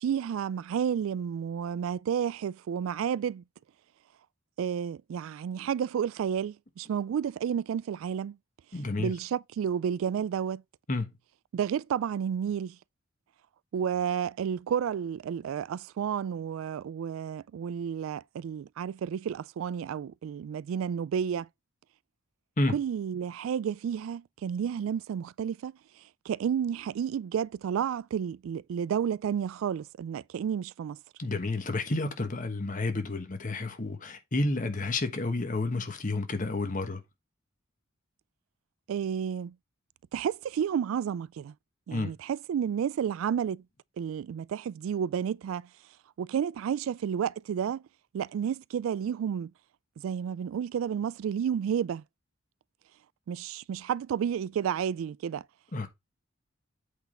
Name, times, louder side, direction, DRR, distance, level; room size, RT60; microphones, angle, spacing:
voice 1, 0.0-3.4 4.6-8.4 9.0-10.6 11.5-12.8 13.7-21.5 22.7-25.7 26.3-31.0 38.9-39.5 40.1-41.5 41.9-43.6 44.0-45.7 46.2-47.8 48.1-49.5 50.0-52.0 53.3-55.4, right 8 dB, 80° right, 0.3 m, -31 dB
voice 2, 8.7-9.1 10.9-11.1 22.6-22.7 31.2-37.0 41.9-42.1 55.7-55.9, left 2 dB, 40° left, 1.2 m, -30 dB
8.2 x 4.0 x 4.3 m
head